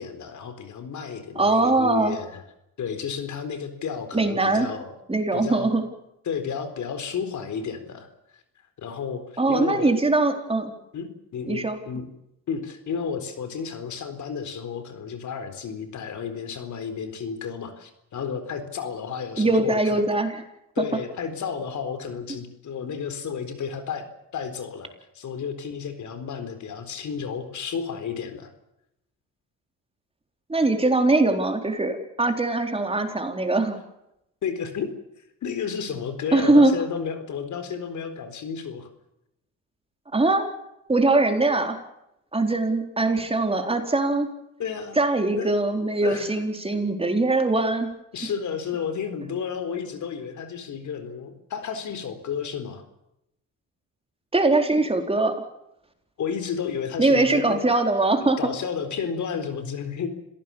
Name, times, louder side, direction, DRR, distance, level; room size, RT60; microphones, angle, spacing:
voice 1, 0.0-2.4 2.8-4.9 5.3-5.8 6.3-8.4 8.8-9.9 10.9-12.1 12.5-20.0 20.7-24.0 24.3-28.5 34.4-34.9 35.2-38.9 44.6-45.0 45.3-45.5 46.0-46.4 48.1-52.8 56.2-57.7 58.4-60.1, left 6 dB, 65° left, 10 dB, 4.1 m, -32 dB
voice 2, 1.4-2.2 4.1-4.7 5.1-5.9 9.4-10.7 11.5-11.8 19.4-20.4 20.8-20.9 30.5-33.8 36.3-36.7 40.1-40.5 40.9-41.8 42.3-44.3 45.0-47.9 54.3-55.4 57.0-58.5, right 2 dB, 20° right, 5 dB, 4.2 m, -22 dB
27.5 x 17.5 x 7.2 m, 0.83 s
cardioid pair, 95°, 32 cm